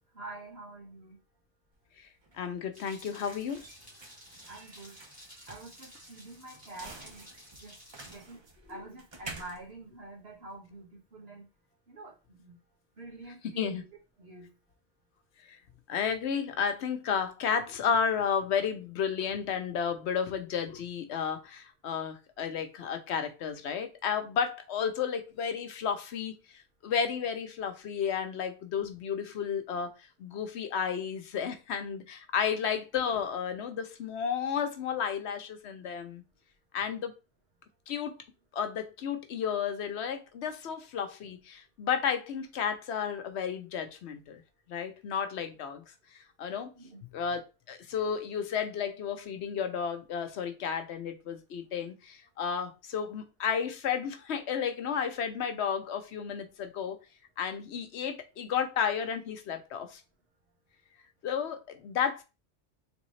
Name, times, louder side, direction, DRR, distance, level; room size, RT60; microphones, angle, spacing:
voice 1, 0.1-1.2 4.5-4.9 5.5-7.3 7.6-7.7 8.0-8.4 8.7-11.4 11.9-12.5 13.0-13.8 14.2-14.5 46.7-47.0, right 2 dB, 60° right, 1.8 m, -47 dB
sound 1, 1.7-10.8, right 3 dB, 30° right, 0.6 m, -50 dB
voice 2, 2.3-3.6 13.4-13.8 15.5-15.6 15.9-36.2 36.7-37.1 37.9-38.2 38.5-44.4 44.7-45.8 46.4-46.7 47.1-57.0 57.4-60.0 61.2-62.2, left 7 dB, 75° left, 0.9 m, -32 dB
sound 2, 2.7-8.1, equal, 5° right, 2.3 m, -53 dB
3.7 x 3.4 x 3.1 m
omnidirectional pair, 1.2 m